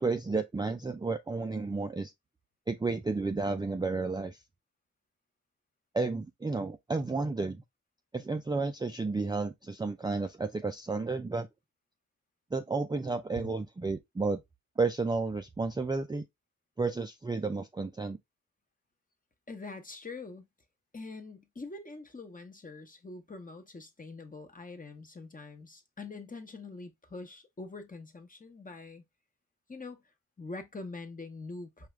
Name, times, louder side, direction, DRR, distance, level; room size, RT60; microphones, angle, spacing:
voice 1, 0.0-2.1 2.7-4.4 5.9-7.6 8.1-11.5 12.5-14.4 14.8-16.2 16.8-18.2, right 3 dB, 15° right, 0.3 m, -32 dB
voice 2, 19.5-20.4 20.9-29.0 29.7-30.0 30.4-31.9, left 3 dB, 25° left, 0.9 m, -44 dB
4.7 x 2.4 x 3.1 m
wide cardioid pair, 90°, 32 cm